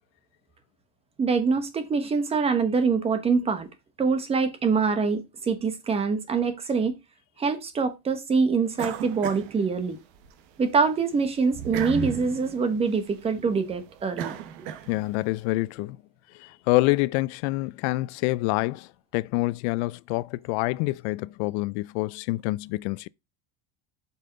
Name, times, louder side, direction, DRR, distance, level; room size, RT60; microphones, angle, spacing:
voice 1, 1.2-3.7 4.0-7.0 7.4-10.0 10.6-14.4, right 5 dB, 20° right, 1.1 m, -24 dB
sound 1, 8.8-10.3 10.7-15.3, right 8 dB, 75° right, 1.4 m, -36 dB
voice 2, 14.9-16.0 16.4-18.9 19.1-23.1, left 21 dB, 90° left, 0.5 m, -26 dB
7.6 x 5.6 x 3.9 m
cardioid pair, 170°, 33 cm